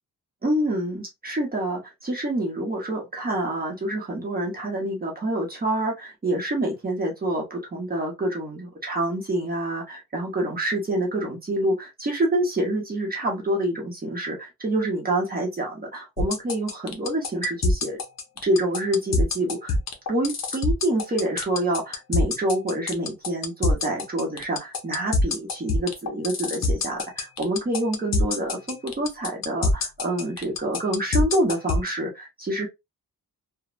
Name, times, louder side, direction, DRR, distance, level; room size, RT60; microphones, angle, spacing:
voice 1, 0.4-18.0 18.4-19.8 20.1-32.7, right 1 dB, 25° right, 0.8 m, -27 dB
sound 1, 16.2-31.9, left 3 dB, 50° left, 0.7 m, -24 dB
3.0 x 2.1 x 2.3 m
wide cardioid pair, 145°, 36 cm